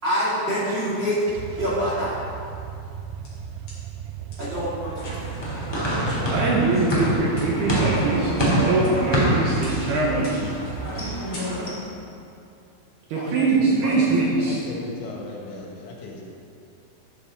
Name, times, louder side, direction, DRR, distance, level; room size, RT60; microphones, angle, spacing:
voice 1, 0.0-1.2 1.6-2.1 4.4-4.9 13.2-13.9, equal, 30° right, -9 dB, 2.5 m, -26 dB
sound 1, 1.3-11.2, right 8 dB, 90° right, 2.5 m, -36 dB
sound 2, 2.8-3.8 4.3-4.4 4.9-5.5 6.0-6.6 6.9-7.0 7.4-7.5 8.0-8.5 8.8-9.2 9.6-9.9 10.2-10.6 10.9-11.0 11.3-11.9, left 1 dB, 35° left, 3.3 m, -42 dB
sound 3, 5.0-11.7, equal, 15° left, 0.9 m, -26 dB
voice 2, 6.3-10.5 13.1-14.6, right 3 dB, 70° right, -4 dB, 2.8 m, -23 dB
voice 3, 13.1-16.3, left 3 dB, 80° left, -2 dB, 4.2 m, -37 dB
12.5 x 10.5 x 3.8 m, 2.5 s
omnidirectional pair, 5.7 m